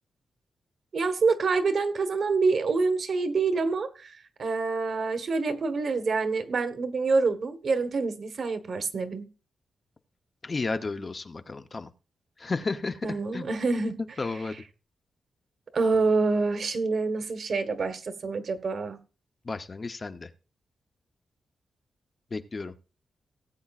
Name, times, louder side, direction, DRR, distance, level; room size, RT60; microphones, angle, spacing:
voice 1, 0.9-4.1 4.4-9.3 13.0-14.0 15.7-19.0, right 4 dB, 50° right, 1.3 m, -26 dB
voice 2, 10.4-11.9 12.4-13.5 14.2-14.6 19.4-20.3 22.3-22.7, left 3 dB, 30° left, 0.7 m, -33 dB
18.5 x 8.5 x 2.4 m
wide cardioid pair, 150°, 0 cm